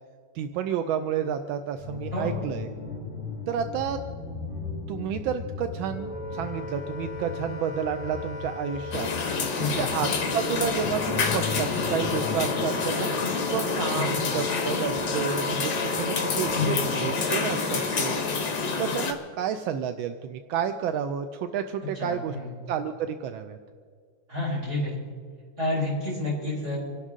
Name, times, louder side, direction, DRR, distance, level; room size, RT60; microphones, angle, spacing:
voice 1, 0.3-2.7 3.5-4.0 4.9-9.1 9.6-18.2 18.8-22.4 22.7-23.6, right 8 dB, 85° right, 8 dB, 1.4 m, -30 dB
sound 1, 1.8-12.7, left 4 dB, 20° left, 3.9 m, -38 dB
voice 2, 2.1-2.5 9.6-9.9 14.0-14.2 16.5-16.8 22.0-22.5 24.3-25.0 25.6-26.8, left 2 dB, 35° right, -5 dB, 5.4 m, -29 dB
Wind instrument woodwind instrument, 5.8-18.5, left 2 dB, 40° left, 0.5 m, -37 dB
sound 2, 8.9-19.1, left 4 dB, 65° left, 2.1 m, -28 dB
26.0 x 11.5 x 3.7 m, 2.1 s
omnidirectional pair, 2.1 m